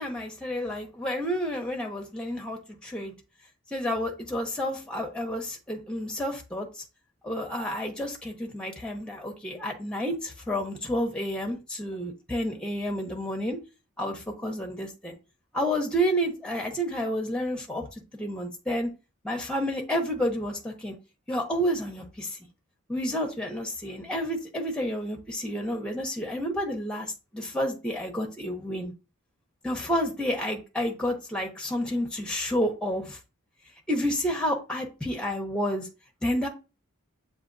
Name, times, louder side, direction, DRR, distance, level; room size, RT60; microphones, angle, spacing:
voice 1, 0.0-3.1 3.7-6.7 7.2-13.6 14.0-15.2 15.5-17.8 18.1-18.9 19.2-20.9 21.3-22.4 22.9-28.9 29.6-33.2 33.9-35.9 36.2-36.5, equal, 5° left, 2 dB, 0.7 m, -30 dB
7.3 x 2.7 x 2.6 m, 0.30 s
head